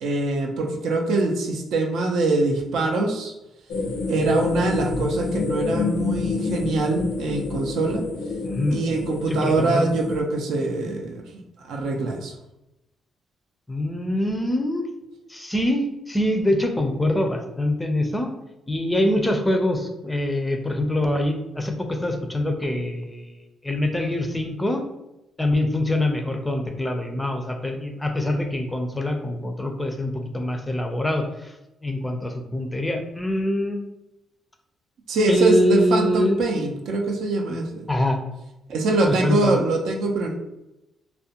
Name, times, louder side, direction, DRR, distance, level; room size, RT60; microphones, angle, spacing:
voice 1, 0.0-3.3 4.1-8.0 8.7-11.2 11.7-12.3 35.1-37.9 38.7-40.4, right 2 dB, 75° right, 2 dB, 0.4 m, -23 dB
sound 1, 3.7-10.2, left 4 dB, 85° left, 0.5 m, -28 dB
voice 2, 8.4-8.8 9.3-9.9 13.7-14.9 15.3-18.3 18.7-24.8 25.4-31.5 31.8-33.8 35.3-36.4 37.9-38.2 39.0-39.6, left 1 dB, 10° left, 4 dB, 0.4 m, -24 dB
2.4 x 2.1 x 2.8 m, 0.92 s
cardioid pair, 90°, 0 cm